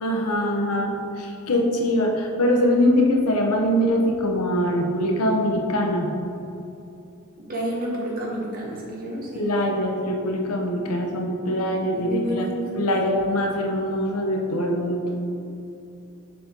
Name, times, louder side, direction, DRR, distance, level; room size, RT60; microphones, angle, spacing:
voice 1, 0.0-6.1 9.3-12.5 12.8-15.2 15.4-15.5, left 1 dB, 85° left, 1 dB, 0.9 m, -23 dB
voice 2, 7.5-9.4 11.9-12.7, right 1 dB, 40° right, -3 dB, 1.3 m, -29 dB
6.7 x 5.3 x 3.8 m, 2.7 s
head